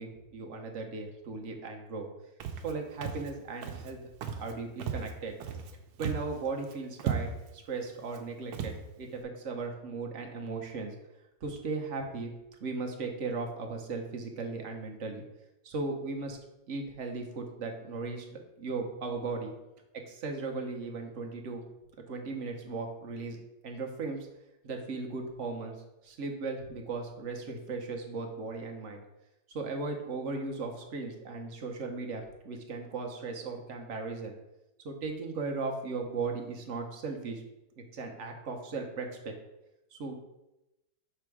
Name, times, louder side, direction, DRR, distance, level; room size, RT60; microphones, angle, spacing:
voice 1, 0.0-2.1 2.6-4.0 4.4-5.3 6.0-10.9 11.4-12.3 12.6-15.2 15.6-16.4 16.7-19.5 20.1-21.6 22.1-23.4 23.6-24.3 24.6-25.8 26.0-29.0 29.5-34.3 34.8-37.4 37.8-39.3 39.9-40.1, right 3 dB, 55° right, 2 dB, 1.1 m, -37 dB
Walk footsteps, 2.4-2.7 3.0-3.3 3.6-3.9 4.2-4.5 4.8-5.7 6.0-6.4 6.6-6.7 7.0-7.5 8.1-8.2 8.5-8.8, right 7 dB, 90° right, 1.2 m, -35 dB
6.0 x 3.4 x 4.7 m, 0.95 s
omnidirectional pair, 1.7 m